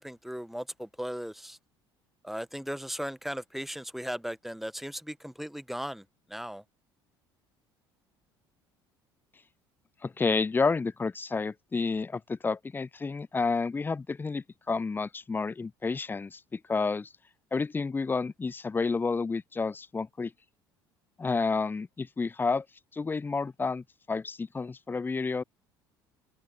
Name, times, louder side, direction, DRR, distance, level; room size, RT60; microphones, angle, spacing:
voice 1, 0.0-1.6 2.2-6.0 6.3-6.6, equal, ahead, 1.4 m, -37 dB
voice 2, 10.0-17.1 17.5-20.3 21.2-22.7 22.9-25.4, left 4 dB, 15° left, 0.5 m, -30 dB
figure-of-eight pair, 60°, 13 cm